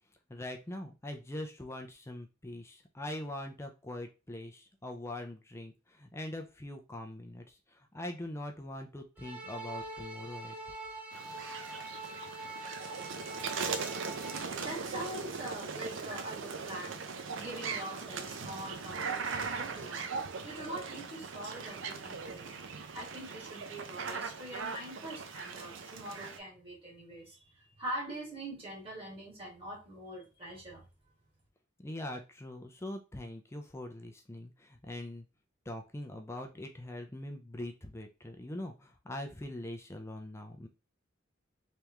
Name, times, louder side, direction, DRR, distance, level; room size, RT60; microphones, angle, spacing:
voice 1, 0.3-10.6 31.8-35.3 35.7-40.7, left 1 dB, 15° left, 4 dB, 0.5 m, -42 dB
sound 1, 9.2-14.4, right 2 dB, 10° right, 0.8 m, -44 dB
sound 2, 11.1-26.4, right 5 dB, 80° right, 0.6 m, -39 dB
voice 2, 14.6-17.0 17.3-22.6 22.9-30.8, right 1 dB, 30° right, -4 dB, 2.1 m, -43 dB
3.5 x 3.3 x 3.0 m, 0.29 s
head